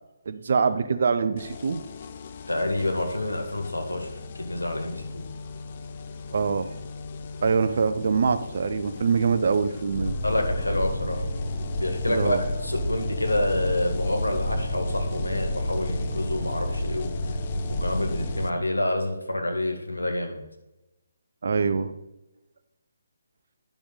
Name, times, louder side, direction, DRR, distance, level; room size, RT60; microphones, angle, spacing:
voice 1, 0.3-1.8 6.3-6.7 7.4-10.2 12.1-12.4 21.4-21.9, right 5 dB, 55° right, 10 dB, 0.6 m, -24 dB
sound 1, 1.4-18.5, left 6 dB, 40° left, 0.6 m, -41 dB
voice 2, 2.5-4.1 4.4-5.3 10.2-11.2 11.8-17.1 17.8-20.4, left 1 dB, 85° left, 3 dB, 1.7 m, -28 dB
sound 2, 9.9-18.5, left 1 dB, 15° left, 2.7 m, -30 dB
10.0 x 6.0 x 4.0 m, 0.94 s
figure-of-eight pair, 145°, 0 cm